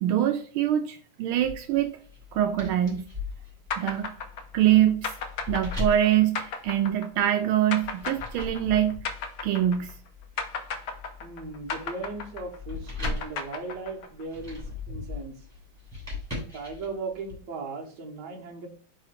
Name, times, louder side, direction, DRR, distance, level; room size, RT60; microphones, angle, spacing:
voice 1, 0.0-1.9 2.3-3.0 3.8-4.1 4.5-5.1 5.5-9.0 9.4-9.9, right 11 dB, 85° right, 6 dB, 1.4 m, -24 dB
sound 1, 1.4-7.2 7.8-17.3, left 3 dB, 5° right, 3.0 m, -39 dB
sound 2, 3.7-10.1 10.4-14.2, left 5 dB, 60° left, 1.0 m, -34 dB
voice 2, 11.2-15.3 16.5-18.7, right 3 dB, 60° right, 1 dB, 1.7 m, -37 dB
4.8 x 3.9 x 5.6 m, 0.43 s
omnidirectional pair, 2.3 m